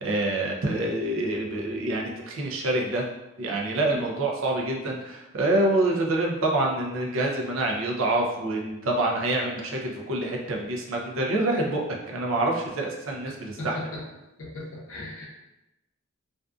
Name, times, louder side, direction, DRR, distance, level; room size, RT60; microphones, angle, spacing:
voice 1, 0.0-3.0 3.4-13.7, right 2 dB, 75° right, 0 dB, 0.5 m, -26 dB
voice 2, 13.2-14.0 14.4-15.2, left 2 dB, 85° left, -3 dB, 0.7 m, -37 dB
2.5 x 2.3 x 2.3 m, 0.96 s
head